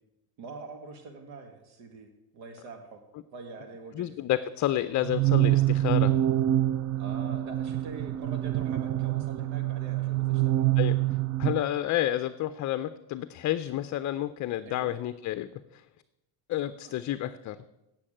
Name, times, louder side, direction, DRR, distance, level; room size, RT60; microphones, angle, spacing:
voice 1, 0.4-3.0 3.3-4.1 7.0-11.0 14.6-14.9 16.8-17.0, right 3 dB, 80° right, 5 dB, 1.9 m, -45 dB
voice 2, 4.0-6.1 10.8-10.9 11.4-15.8 16.5-17.6, left 13 dB, 40° left, 12 dB, 0.5 m, -30 dB
sound 1, 5.0-11.6, right 14 dB, 35° right, 0.4 m, -26 dB
8.5 x 8.4 x 8.8 m, 0.95 s
cardioid pair, 115°, 48 cm